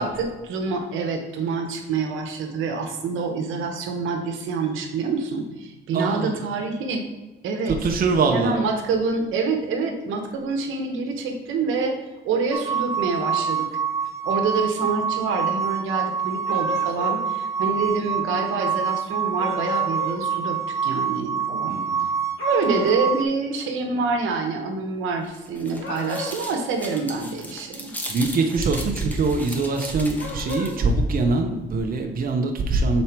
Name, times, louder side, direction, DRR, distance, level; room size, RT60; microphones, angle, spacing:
voice 1, 0.0-7.0 7.4-7.7 8.3-12.0 12.2-13.7 14.2-21.8 22.4-28.0, right 4 dB, 85° right, 3 dB, 1.0 m, -26 dB
voice 2, 5.9-6.4 7.7-8.6 21.7-22.2 28.1-33.0, right 3 dB, 45° right, 3 dB, 0.8 m, -23 dB
sound 1, 12.5-23.3, right 7 dB, 15° right, 0.6 m, -26 dB
sound 2, 16.4-17.2 19.4-20.2 22.4-23.0 25.7-26.5 30.1-30.7, left 4 dB, 80° left, 1.7 m, -33 dB
sound 3, 25.2-30.9, equal, 10° left, 1.1 m, -37 dB
5.5 x 4.4 x 4.5 m, 1.1 s
cardioid pair, 90°, 20 cm